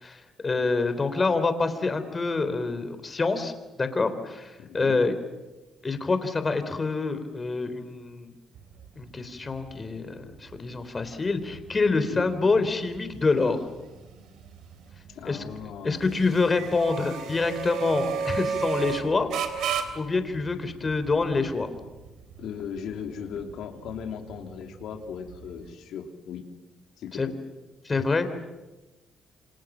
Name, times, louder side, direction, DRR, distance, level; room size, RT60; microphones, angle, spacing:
voice 1, 0.0-3.5 3.8-5.1 5.8-8.3 9.0-13.6 15.3-15.4 15.8-19.3 19.6-21.7 27.1-27.3 27.8-28.3, left 3 dB, 30° left, 10 dB, 3.8 m, -26 dB
voice 2, 4.6-5.0 12.1-12.6 15.1-16.0 22.4-26.4 27.0-27.3, left 7 dB, 80° left, 4 dB, 3.2 m, -38 dB
sound 1, 8.5-25.7, right 7 dB, 85° right, 3.4 m, -36 dB
28.5 x 26.0 x 7.4 m, 1.1 s
cardioid pair, 90°, 0 cm